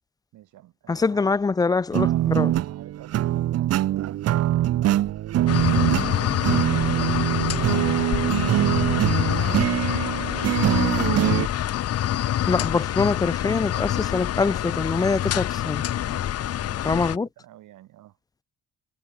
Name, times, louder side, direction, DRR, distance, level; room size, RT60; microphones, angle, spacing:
voice 1, 0.3-1.3 2.0-4.5 5.7-6.6 7.5-9.8 16.0-18.2, right 14 dB, 85° right, 3.0 m, -48 dB
voice 2, 0.9-2.5 12.5-15.8 16.8-17.3, left 4 dB, 15° left, 0.3 m, -24 dB
sound 1, 1.9-11.5, right 13 dB, 55° right, 0.5 m, -23 dB
sound 2, 5.5-17.2, left 11 dB, 55° left, 0.7 m, -26 dB
cardioid pair, 90°, 30 cm